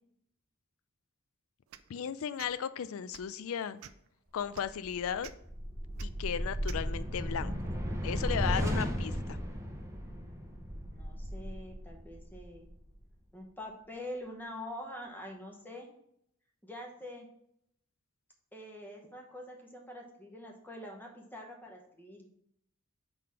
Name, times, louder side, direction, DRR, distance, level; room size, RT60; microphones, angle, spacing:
sound 1, 1.7-1.9 2.4-2.5 3.1-3.3 3.8-4.1 4.5-4.7 5.2-5.3 6.0-6.1 6.7-6.8, right 10 dB, 70° right, 0.4 m, -48 dB
voice 1, 1.9-3.8 4.3-5.3 6.0-7.5 8.0-9.4, left 8 dB, 70° left, 14 dB, 0.3 m, -35 dB
sound 2, 4.8-13.0, equal, 15° right, 0.6 m, -35 dB
voice 2, 9.9-12.7 13.3-15.9 16.6-17.3 18.5-22.2, left 1 dB, 10° left, 0 dB, 0.9 m, -45 dB
4.9 x 3.9 x 5.6 m, 0.72 s
head